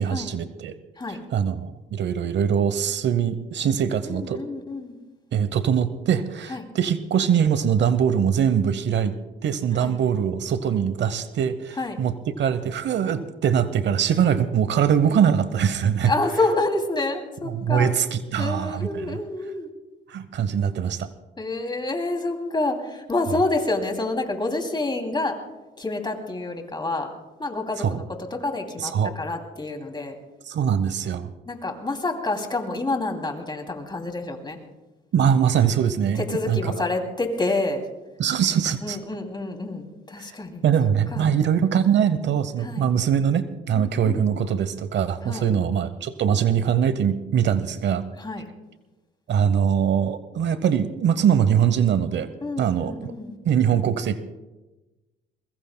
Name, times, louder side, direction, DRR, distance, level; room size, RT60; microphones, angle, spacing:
voice 1, 0.0-0.8 1.1-4.4 5.3-16.1 17.4-19.2 20.1-21.1 27.8-28.0 28.8-29.1 30.4-31.3 35.1-36.7 38.2-39.0 40.2-40.3 40.6-48.0 49.3-52.3 52.6-53.1 53.4-54.2, right 8 dB, 65° right, 13 dB, 0.9 m, -22 dB
voice 2, 4.0-5.0 6.5-6.7 9.8-10.0 11.8-12.0 16.0-17.9 18.4-19.7 21.4-25.4 25.8-27.1 27.4-30.2 31.5-34.6 36.2-37.8 38.8-40.6 41.1-41.3 42.6-42.9 43.7-44.2 45.2-45.5 48.2-48.5 52.4-53.4, left 2 dB, 20° left, 4 dB, 2.7 m, -28 dB
22.5 x 21.5 x 2.2 m, 1.1 s
cardioid pair, 90°, 20 cm